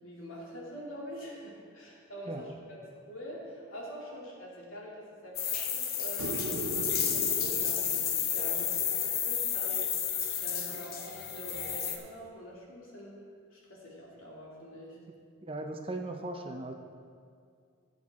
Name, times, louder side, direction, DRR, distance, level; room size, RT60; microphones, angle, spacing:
voice 1, 0.0-2.8 3.1-8.0 8.3-10.1 10.4-13.2 13.5-15.0, equal, 70° left, -4 dB, 2.8 m, -45 dB
sound 1, 5.4-12.0, left 8 dB, 45° left, 0.9 m, -31 dB
sound 2, 6.2-9.5 12.0-12.1, right 2 dB, 75° right, 0.7 m, -40 dB
voice 2, 15.4-16.7, right 2 dB, 25° right, 4 dB, 0.6 m, -38 dB
15.5 x 7.8 x 3.7 m, 2.2 s
head